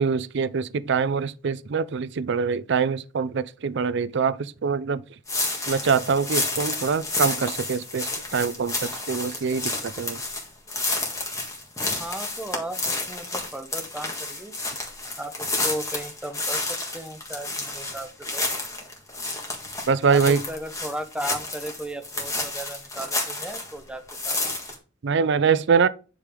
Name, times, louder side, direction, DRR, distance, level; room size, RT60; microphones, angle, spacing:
voice 1, 0.0-5.0 5.7-10.2 19.9-20.4 25.0-25.9, right 5 dB, 65° right, 0.5 m, -24 dB
sound 1, 5.3-23.8 24.1-24.7, left 2 dB, 15° left, 1.8 m, -30 dB
voice 2, 12.0-14.5 15.2-18.4 20.1-24.4, right 1 dB, 5° right, 0.9 m, -36 dB
9.7 x 5.2 x 3.7 m
head